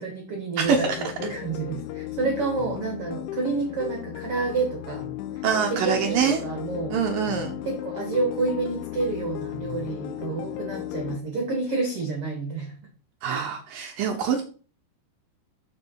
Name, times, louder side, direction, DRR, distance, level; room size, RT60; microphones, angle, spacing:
voice 1, 0.0-0.8 1.2-5.1 5.3-7.0 7.6-12.7 13.2-13.5, right 3 dB, 50° right, 2 dB, 1.8 m, -29 dB
sound 1, 0.6-11.2, left 13 dB, 85° left, 3.0 m, -35 dB
voice 2, 0.6-1.0 5.4-6.4 6.9-7.6 13.2-14.4, right 6 dB, 75° right, 4 dB, 2.0 m, -24 dB
7.1 x 6.6 x 5.7 m, 0.39 s
omnidirectional pair, 5.4 m